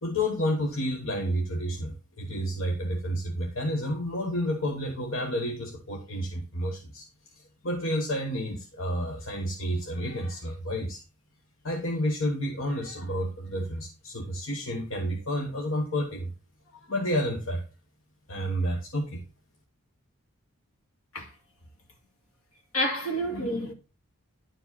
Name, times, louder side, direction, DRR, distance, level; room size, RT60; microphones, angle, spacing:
voice 1, 0.0-7.1 7.3-11.0 11.6-16.3 16.7-17.6 18.3-19.2, equal, 60° left, 1.2 m, -30 dB
voice 2, 22.7-23.7, equal, 80° left, 2.4 m, -29 dB
11.0 x 4.9 x 4.1 m
head